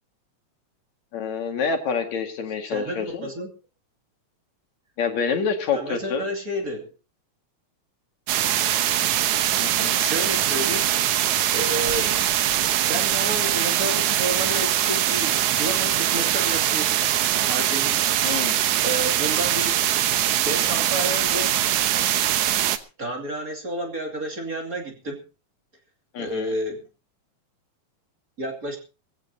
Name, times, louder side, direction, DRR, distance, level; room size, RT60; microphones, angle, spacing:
voice 1, 1.1-3.3 5.0-6.3 9.6-10.0 18.2-18.5 26.1-26.5, left 5 dB, 70° left, 4 dB, 3.4 m, -27 dB
voice 2, 2.6-3.5 5.7-6.9 9.9-10.9 11.5-12.2 12.8-17.1 17.5-18.1 18.8-19.8 20.4-21.6 23.0-25.2 26.2-26.9 28.4-28.8, equal, 30° right, 2 dB, 2.8 m, -30 dB
sound 1, 8.3-22.8, right 12 dB, 85° right, 2.4 m, -22 dB
21.5 x 15.5 x 2.8 m, 0.31 s
omnidirectional pair, 3.3 m